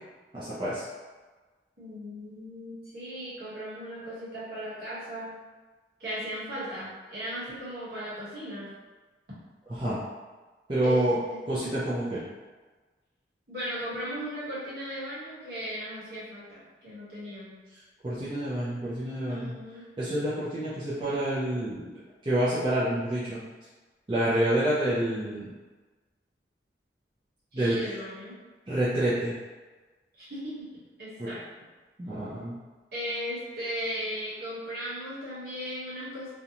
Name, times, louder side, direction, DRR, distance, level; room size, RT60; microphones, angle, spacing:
voice 1, 0.3-0.8 9.8-10.0 10.7-11.2 11.5-12.2 18.0-19.5 20.0-21.9 22.2-23.4 24.1-25.5 27.5-27.8 28.7-29.3 31.2-31.3 32.0-32.5, right 1 dB, 25° right, -10 dB, 0.5 m, -28 dB
voice 2, 1.8-5.3 6.0-8.7 10.8-11.4 13.5-17.6 19.3-19.8 27.5-28.4 30.2-30.5 31.0-31.4 32.9-36.3, equal, 55° right, -9 dB, 1.2 m, -37 dB
2.5 x 2.2 x 2.8 m, 1.3 s
head